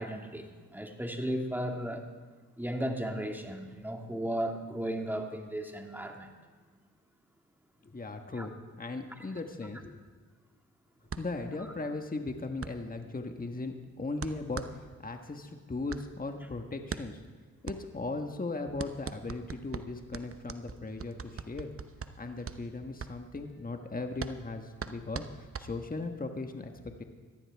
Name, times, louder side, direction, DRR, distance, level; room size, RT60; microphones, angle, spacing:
voice 1, 0.0-2.1 2.6-6.3 8.4-8.5, right 1 dB, 5° right, 3 dB, 2.2 m, -35 dB
voice 2, 7.8-8.5 8.8-10.0 11.2-17.2 17.6-21.7 22.2-27.0, left 3 dB, 25° left, 5 dB, 1.4 m, -38 dB
sound 1, 11.1-26.2, right 6 dB, 40° right, 0.9 m, -43 dB
19.5 x 14.0 x 3.6 m, 1.5 s
supercardioid pair, 55°, 36 cm